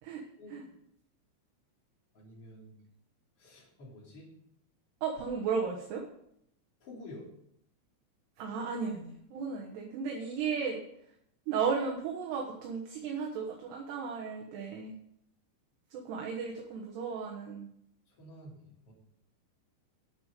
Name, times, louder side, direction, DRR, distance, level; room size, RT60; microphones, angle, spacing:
voice 1, 2.1-2.7 3.4-4.3 6.8-7.3 18.1-18.9, left 1 dB, 35° left, -3 dB, 3.2 m, -49 dB
voice 2, 5.0-6.0 8.4-10.8 11.5-14.9 15.9-17.7, right 5 dB, 70° right, 0 dB, 2.8 m, -35 dB
10.5 x 6.9 x 6.7 m, 0.73 s
omnidirectional pair, 6.0 m